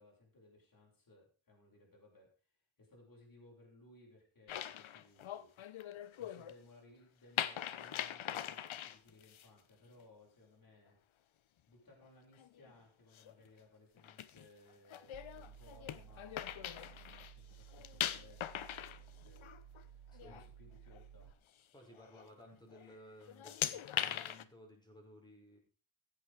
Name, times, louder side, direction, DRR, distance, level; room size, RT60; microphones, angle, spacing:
voice 1, 0.0-11.0 11.7-21.3, left 2 dB, 45° left, -2 dB, 6.2 m, -63 dB
sound 1, 4.5-6.6 7.4-9.5 12.4-12.7 13.1-13.3 14.0-17.3 17.6-19.8 20.1-20.5 20.9-21.0 21.9-22.3 22.7-23.0 23.2-24.4, left 11 dB, 80° left, 1.0 m, -41 dB
sound 2, 15.1-21.3, right 9 dB, 85° right, 1.1 m, -56 dB
voice 2, 20.1-20.4 21.7-25.6, equal, 10° left, 0 dB, 5.8 m, -57 dB
15.5 x 8.9 x 5.0 m, 0.35 s
wide cardioid pair, 130°, 47 cm